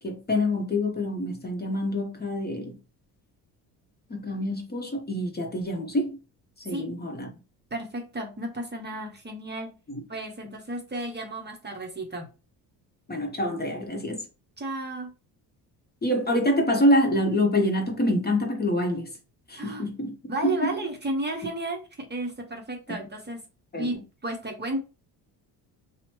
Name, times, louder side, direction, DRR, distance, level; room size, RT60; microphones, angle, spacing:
voice 1, 0.0-2.8 4.1-6.2 6.6-7.3 9.9-10.0 13.1-14.3 16.0-19.1 19.5-20.2 20.6-20.7 23.7-23.9, left 1 dB, 20° left, 0.8 m, -26 dB
voice 2, 7.7-9.8 10.1-12.3 14.6-15.1 19.6-19.8 20.3-23.4 23.8-24.8, right 2 dB, 25° right, 0.7 m, -33 dB
2.9 x 2.1 x 2.9 m
supercardioid pair, 65°, 44 cm